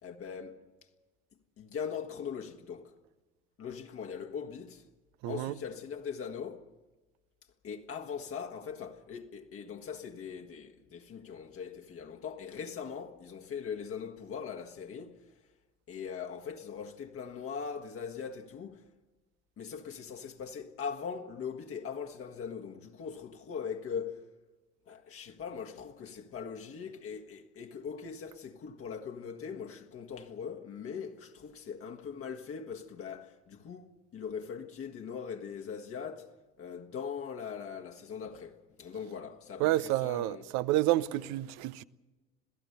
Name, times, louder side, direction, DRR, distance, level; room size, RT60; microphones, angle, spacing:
voice 1, 0.0-0.7 1.6-2.9 3.6-4.8 5.3-6.7 7.6-15.3 15.9-18.9 19.6-24.3 24.9-40.4 41.0-41.3, left 6 dB, 45° left, 1.7 m, -41 dB
voice 2, 5.2-5.5 39.6-41.8, right 15 dB, 60° right, 0.8 m, -29 dB
27.0 x 17.0 x 6.7 m
figure-of-eight pair, 60°, 32 cm